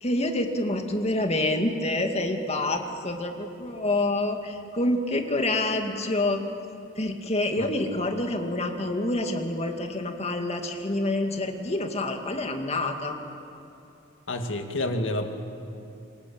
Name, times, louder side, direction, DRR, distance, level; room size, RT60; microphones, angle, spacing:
voice 1, 0.0-6.4 7.0-13.2, left 2 dB, 35° left, 5 dB, 2.3 m, -27 dB
voice 2, 14.3-15.3, left 1 dB, 75° left, 5 dB, 2.3 m, -29 dB
27.5 x 23.0 x 8.8 m, 2.8 s
head